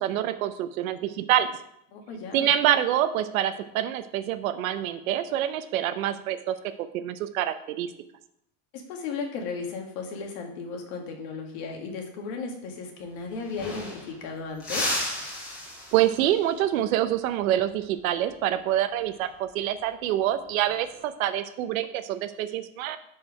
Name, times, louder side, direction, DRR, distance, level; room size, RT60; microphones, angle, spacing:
voice 1, 0.0-1.5 2.3-7.9 15.9-23.0, right 12 dB, 80° right, 11 dB, 0.9 m, -26 dB
voice 2, 1.9-2.5 8.7-14.9, left 4 dB, 50° left, 2 dB, 1.9 m, -35 dB
sound 1, 13.0-13.1 13.3-14.2 14.6-16.4 18.9-19.2 20.6-21.0, left 1 dB, 20° left, 4.1 m, -33 dB
11.5 x 4.9 x 4.8 m, 0.77 s
supercardioid pair, 180°, 41 cm